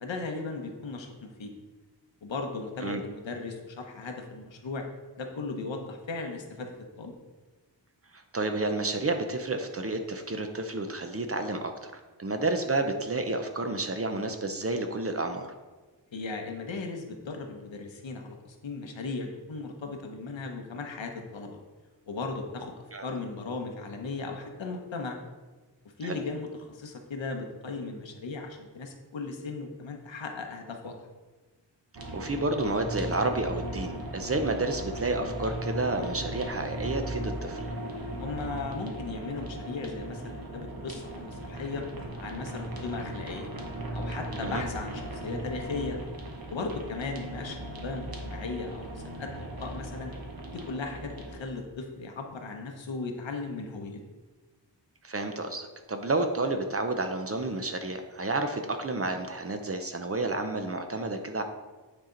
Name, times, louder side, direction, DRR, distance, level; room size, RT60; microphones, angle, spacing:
voice 1, 0.0-1.5 2.2-4.8 5.2-6.7 7.0-7.2 16.1-21.6 22.1-22.7 23.0-25.2 26.0-30.9 38.2-41.9 42.2-43.5 43.9-46.0 46.5-50.1 50.5-54.0, left 3 dB, 80° left, 3 dB, 1.1 m, -37 dB
voice 2, 8.1-11.9 12.2-15.5 22.9-23.0 26.0-26.2 32.1-37.7 44.4-44.6 55.0-61.4, right 2 dB, 30° right, 6 dB, 0.7 m, -30 dB
sound 1, 31.9-51.4, right 1 dB, 55° right, 1.2 m, -37 dB
9.2 x 4.3 x 3.9 m, 1.3 s
wide cardioid pair, 95°, 44 cm